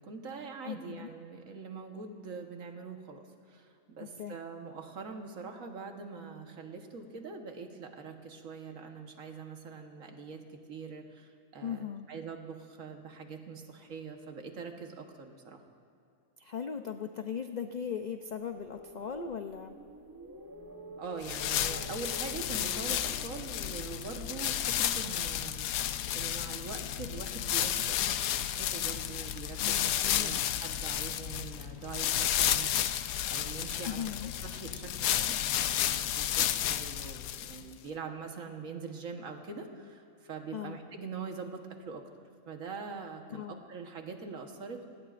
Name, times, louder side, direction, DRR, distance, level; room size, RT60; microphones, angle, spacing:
voice 1, 0.0-15.6 21.0-25.7 26.1-42.1 42.5-44.9, right 5 dB, 70° right, 4 dB, 1.7 m, -43 dB
voice 2, 0.6-1.1 4.0-4.4 11.6-12.1 16.4-19.7 29.6-30.4 33.8-34.3 40.5-40.8 43.3-43.6, left 7 dB, 60° left, 6 dB, 0.4 m, -38 dB
sound 1, 18.2-26.3, equal, 15° right, 1.0 m, -49 dB
sound 2, 21.2-37.7, left 11 dB, 85° left, 1.1 m, -32 dB
26.0 x 18.5 x 2.5 m, 2.6 s
omnidirectional pair, 1.5 m